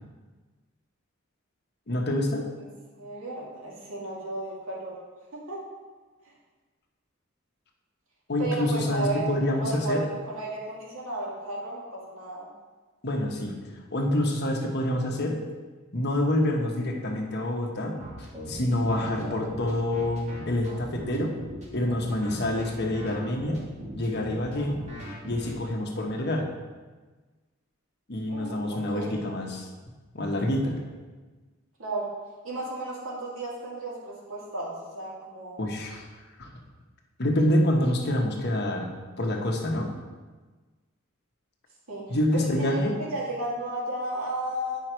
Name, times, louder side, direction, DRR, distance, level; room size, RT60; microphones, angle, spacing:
voice 1, 1.9-2.4 8.3-10.0 13.0-13.6 13.9-15.4 15.9-18.0 18.5-21.3 21.7-23.6 23.9-24.8 25.2-26.5 28.1-29.7 30.1-30.8 35.6-36.1 36.4-36.5 37.2-38.9 39.2-39.9 42.1-43.0, left 1 dB, 55° left, 1 dB, 1.2 m, -27 dB
voice 2, 3.0-5.0 5.3-5.6 8.4-12.5 28.3-29.3 31.8-32.1 32.4-35.6 41.9-44.8, right 2 dB, 80° right, -5 dB, 2.5 m, -34 dB
sound 1, 18.0-25.5, right 1 dB, 35° right, 1.9 m, -39 dB
9.4 x 5.6 x 4.5 m, 1.3 s
head